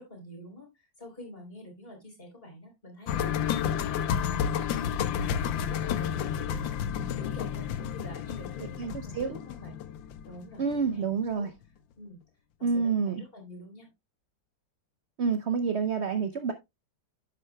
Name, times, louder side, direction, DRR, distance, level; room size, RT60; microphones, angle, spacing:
voice 1, 0.0-9.8 10.3-11.5 12.0-12.2 12.6-13.9, left 1 dB, 30° left, 2 dB, 3.8 m, -47 dB
sound 1, 3.1-11.0 11.3-11.4, left 8 dB, 85° left, 1.5 m, -31 dB
voice 2, 8.8-9.4 10.6-11.5 12.6-13.2 15.2-16.5, right 5 dB, 70° right, 8 dB, 0.6 m, -28 dB
10.0 x 8.3 x 2.2 m, 0.21 s
omnidirectional pair, 2.1 m